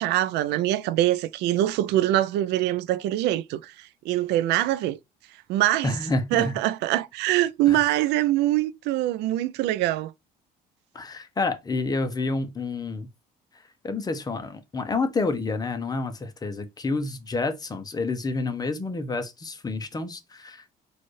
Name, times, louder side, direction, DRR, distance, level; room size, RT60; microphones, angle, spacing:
voice 1, 0.0-5.0 5.5-6.0 6.3-10.1, right 14 dB, 85° right, 0.4 m, -24 dB
voice 2, 5.8-6.6 7.7-7.9 10.9-13.1 13.8-20.7, left 3 dB, 25° left, 0.7 m, -29 dB
4.2 x 2.5 x 3.1 m
cardioid pair, 110°, 17 cm